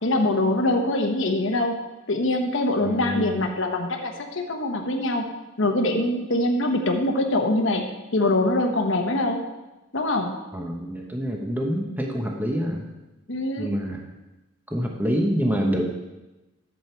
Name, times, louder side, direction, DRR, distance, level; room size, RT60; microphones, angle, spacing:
voice 1, 0.0-1.7 2.1-5.2 5.6-7.8 8.1-9.4 9.9-10.4 13.3-13.7, left 2 dB, 65° left, 3 dB, 1.2 m, -23 dB
voice 2, 2.8-3.4 10.5-12.9 13.6-14.0 14.7-15.9, equal, 10° right, 1 dB, 1.0 m, -26 dB
11.5 x 7.7 x 4.5 m, 1.1 s
head